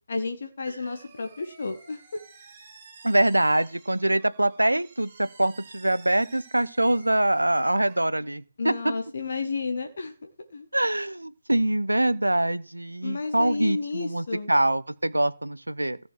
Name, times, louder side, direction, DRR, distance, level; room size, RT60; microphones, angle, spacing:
voice 1, 0.1-2.2 8.6-10.7 13.0-14.5, left 4 dB, 40° left, 6 dB, 1.5 m, -32 dB
sound 1, 0.8-7.9, right 4 dB, 25° right, 7.4 m, -52 dB
voice 2, 3.0-8.9 10.7-16.0, right 1 dB, 75° right, 17 dB, 0.9 m, -24 dB
14.0 x 6.3 x 6.4 m, 0.43 s
figure-of-eight pair, 155°, 0 cm